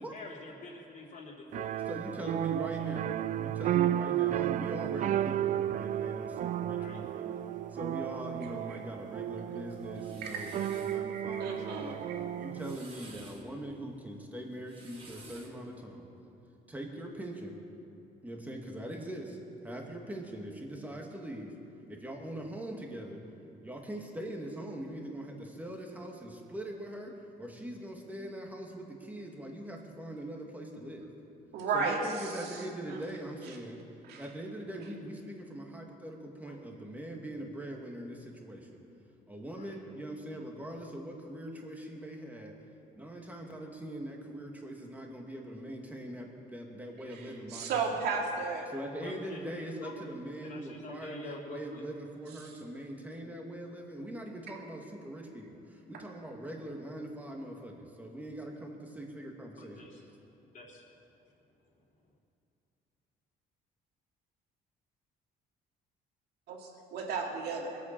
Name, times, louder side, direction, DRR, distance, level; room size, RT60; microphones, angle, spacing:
voice 1, 0.0-2.3 2.8-2.9 6.7-7.0 36.5-36.6 39.5-39.7 49.0-50.0 50.4-51.8 59.6-60.0 60.5-60.8, left 2 dB, 50° left, -3 dB, 3.4 m, -47 dB
sound 1, 1.5-12.8, right 12 dB, 50° right, 0.4 m, -33 dB
voice 2, 1.9-7.4 7.7-12.0 12.4-16.1 16.7-17.6 18.2-19.4 19.6-21.5 21.9-23.2 23.6-31.1 31.7-33.8 34.2-38.8 39.3-42.6 43.0-48.0 48.7-59.9, right 1 dB, 10° right, 0 dB, 2.3 m, -42 dB
sound 2, 9.7-11.0 12.4-13.4 14.5-15.6, right 3 dB, 35° right, 2.7 m, -53 dB
voice 3, 10.2-12.2 31.5-32.6 32.9-33.0 34.1-34.2 47.5-48.7 66.5-67.8, right 4 dB, 75° right, 0 dB, 2.5 m, -34 dB
22.0 x 8.4 x 6.8 m, 2.7 s
cardioid pair, 110°, 17 cm